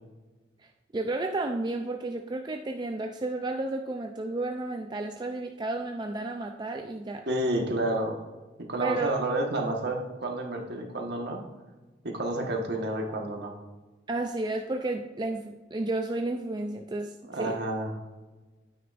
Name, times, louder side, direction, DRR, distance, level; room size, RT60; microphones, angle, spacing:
voice 1, 0.9-7.2 8.8-9.2 14.1-17.6, right 2 dB, 25° right, 3 dB, 0.4 m, -32 dB
voice 2, 7.3-8.2 8.6-11.4 12.0-13.5 17.3-17.9, right 1 dB, 60° right, 1 dB, 1.4 m, -30 dB
9.3 x 9.3 x 2.5 m, 1.2 s
head